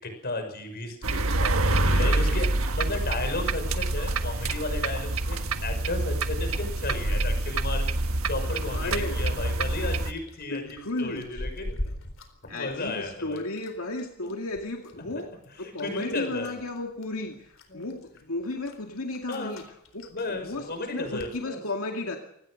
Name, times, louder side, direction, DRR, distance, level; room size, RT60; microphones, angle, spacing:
voice 1, 0.0-8.0 8.3-11.7 12.5-13.4 14.2-14.3 15.6-16.6 17.7-17.9 19.3-19.6 20.1-21.6, left 2 dB, 50° left, 6 dB, 6.1 m, -34 dB
sound 1, 1.0-10.1, right 2 dB, 75° right, 1.5 m, -26 dB
voice 2, 1.7-2.5 8.7-9.2 10.5-11.5 12.5-15.3 15.6-19.6 19.9-22.2, left 2 dB, 85° left, 2 dB, 2.3 m, -34 dB
sound 2, 2.5-21.4, left 1 dB, 65° left, 4.3 m, -45 dB
25.0 x 19.0 x 6.5 m, 0.76 s
head